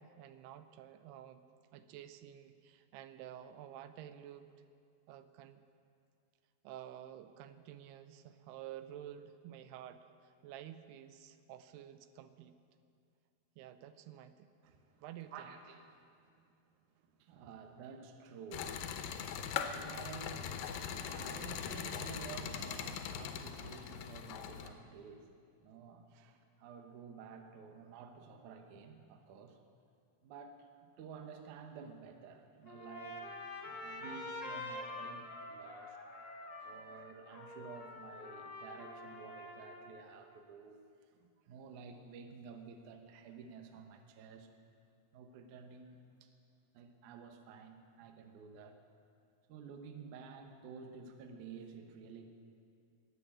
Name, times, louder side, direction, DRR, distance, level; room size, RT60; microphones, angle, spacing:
voice 1, 0.0-1.4 1.7-4.5 5.1-5.6 6.6-12.6 13.6-14.5 15.0-15.5, right 11 dB, 90° right, 11 dB, 2.7 m, -51 dB
voice 2, 14.6-29.6 30.2-36.0 36.6-44.5 45.1-46.3 46.7-48.8 49.5-52.3, right 6 dB, 65° right, 6 dB, 2.1 m, -52 dB
sound 1, 18.5-24.7, left 7 dB, 75° left, 2.2 m, -41 dB
Trumpet, 32.6-40.0, left 2 dB, 30° left, 1.6 m, -46 dB
21.0 x 7.6 x 8.6 m, 2.3 s
omnidirectional pair, 4.6 m